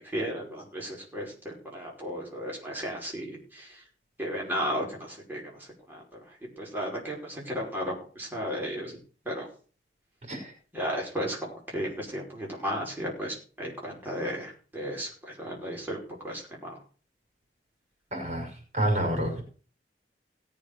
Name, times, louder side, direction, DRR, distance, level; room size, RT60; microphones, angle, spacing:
voice 1, 0.0-3.8 4.2-9.0 9.3-9.5 10.7-16.7, equal, 10° right, -3 dB, 5.2 m, -34 dB
voice 2, 18.1-19.4, right 1 dB, 40° right, 5 dB, 5.9 m, -29 dB
18.0 x 7.5 x 6.7 m, 0.39 s
head